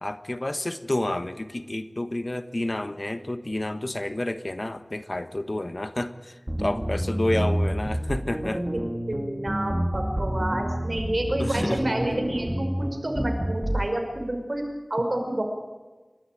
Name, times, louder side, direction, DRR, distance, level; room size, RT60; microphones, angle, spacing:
voice 1, 0.0-8.6 11.4-11.8, left 1 dB, 50° left, 11 dB, 1.3 m, -30 dB
sound 1, 6.5-13.9, right 1 dB, 25° right, 2.8 m, -28 dB
voice 2, 9.1-14.6 14.9-15.4, right 1 dB, 60° right, 3 dB, 5.8 m, -29 dB
28.5 x 13.0 x 9.4 m, 1.3 s
wide cardioid pair, 45°, 0 cm